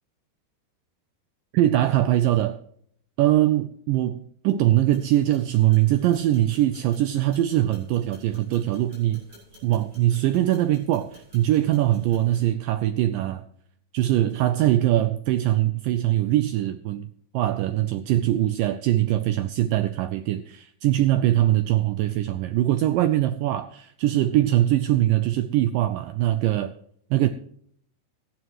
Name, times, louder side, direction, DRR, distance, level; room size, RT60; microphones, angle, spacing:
voice 1, 1.5-2.6 3.2-9.2 9.6-13.4 13.9-17.1 17.3-26.7 27.1-27.3, right 14 dB, 85° right, 1.9 m, -22 dB
sound 1, 4.9-12.4, equal, 30° right, 7.9 m, -53 dB
17.5 x 12.5 x 3.0 m
omnidirectional pair, 4.6 m